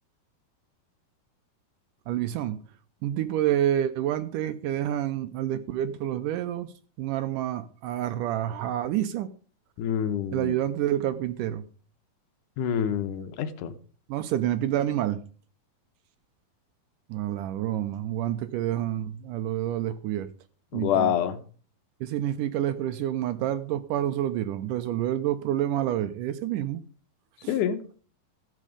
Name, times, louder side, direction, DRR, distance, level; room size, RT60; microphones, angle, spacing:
voice 1, 2.1-2.6 3.0-6.7 7.0-9.3 10.3-11.6 14.1-15.2 17.1-20.3 20.7-21.1 22.0-26.8 27.4-27.6, right 12 dB, 80° right, 2.0 m, -28 dB
voice 2, 9.8-10.6 12.6-13.7 20.7-21.4 27.5-27.8, left 9 dB, 70° left, 2.2 m, -26 dB
15.0 x 7.5 x 5.0 m
omnidirectional pair, 4.3 m